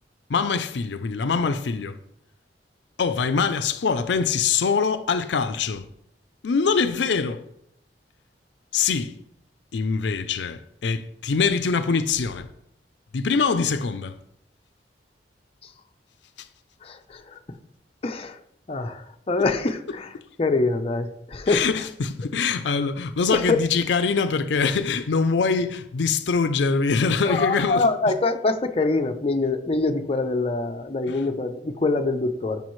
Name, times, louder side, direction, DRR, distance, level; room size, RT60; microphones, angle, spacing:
voice 1, 0.3-2.0 3.0-5.9 6.4-7.4 8.7-9.1 9.7-12.5 13.1-14.2 16.4-16.5 19.4-20.3 21.5-28.2 31.1-31.3, left 5 dB, 80° left, 0.5 m, -24 dB
voice 2, 16.8-17.4 18.0-18.4 18.7-20.1 20.4-21.6 23.3-23.6 27.3-32.7, left 3 dB, 35° left, 0.6 m, -24 dB
11.5 x 5.5 x 3.1 m
head